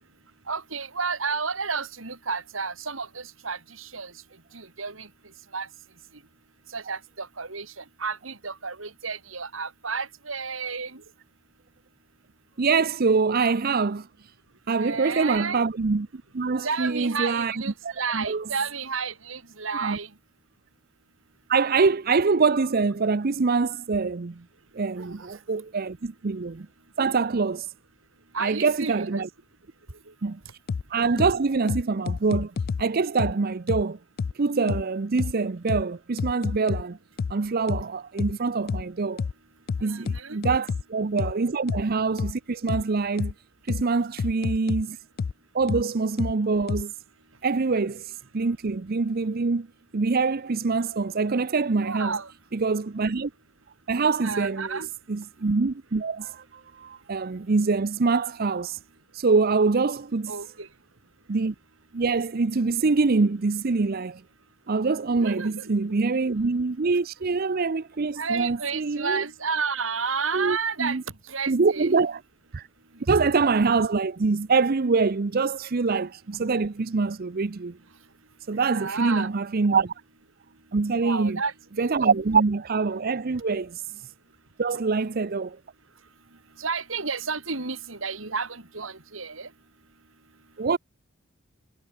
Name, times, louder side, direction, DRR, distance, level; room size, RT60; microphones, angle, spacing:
voice 1, 0.5-4.1 4.5-5.1 5.5-5.7 6.7-11.0 14.8-15.6 16.6-20.1 25.0-25.3 28.3-29.2 30.1-30.2 39.8-40.4 51.8-52.3 54.2-54.9 60.3-60.7 65.2-65.7 66.0-66.1 68.2-71.0 71.3-72.0 78.7-79.3 81.0-81.9 86.6-89.5, right 5 dB, 80° right, 3.5 m, -31 dB
voice 2, 12.6-14.1 14.7-18.4 19.7-20.0 21.5-24.4 24.7-26.7 27.0-27.7 28.4-29.3 30.2-30.4 30.9-32.5 32.8-34.0 34.3-37.0 37.3-39.2 39.8-43.3 43.7-45.0 45.5-46.9 47.4-49.7 49.9-52.2 52.5-53.3 53.9-54.8 55.1-58.8 59.1-60.3 61.3-61.5 61.9-64.2 64.7-69.2 70.3-71.0 71.5-72.2 72.5-72.7 73.0-77.8 78.5-79.9 80.7-81.4 81.8-84.1 84.6-85.6 90.6-90.8, right 4 dB, 50° right, 0.6 m, -25 dB
sound 1, 30.7-30.8 31.2-31.3 31.7-32.8 33.2-33.3 33.7-33.8 34.2-34.3 34.7-34.8 35.2-35.3 35.7-35.8 36.2-36.8 37.2-37.3 37.7-37.8 38.2-38.3 38.7-38.8 39.2-39.3 39.7-40.8 41.2-41.3 41.7-41.8 42.2-42.3 42.7-42.8 43.2-43.3 43.7-43.8 44.2-44.8 45.2-45.3 45.7-45.8 46.2-46.3 46.7-46.8, left 5 dB, 50° left, 0.3 m, -28 dB
head